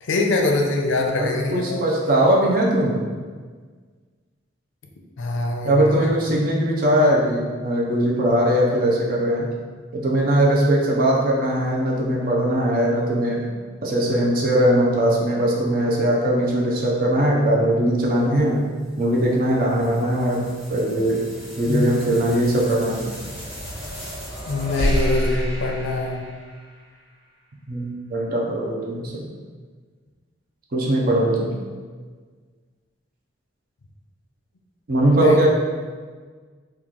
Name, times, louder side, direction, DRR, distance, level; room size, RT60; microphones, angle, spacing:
voice 1, 0.0-1.8 5.2-6.1 21.6-22.1 24.5-26.2 35.1-35.5, left 2 dB, 75° left, 2 dB, 0.5 m, -23 dB
voice 2, 1.2-3.1 5.6-9.5 9.9-13.4 13.8-18.6 19.0-20.4 20.7-21.3 21.6-23.1 27.7-29.3 30.7-31.6 34.9-35.5, right 1 dB, 45° right, -2 dB, 0.5 m, -20 dB
sound 1, 18.3-26.9, equal, 5° right, 0.9 m, -31 dB
2.9 x 2.3 x 3.7 m, 1.5 s
head